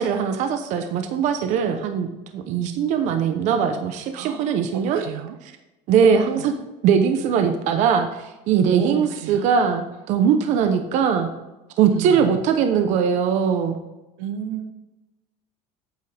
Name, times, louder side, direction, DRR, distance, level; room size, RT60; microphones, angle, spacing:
voice 1, 0.0-2.1 2.3-5.0 5.9-6.5 6.8-8.1 8.5-11.3 11.8-13.8, right 7 dB, 45° right, 7 dB, 0.9 m, -20 dB
voice 2, 4.1-5.4 5.9-6.5 8.7-9.4 11.9-12.3 14.2-14.7, right 9 dB, 75° right, 8 dB, 1.1 m, -32 dB
9.1 x 8.2 x 3.5 m, 1.0 s
cardioid pair, 165°, 17 cm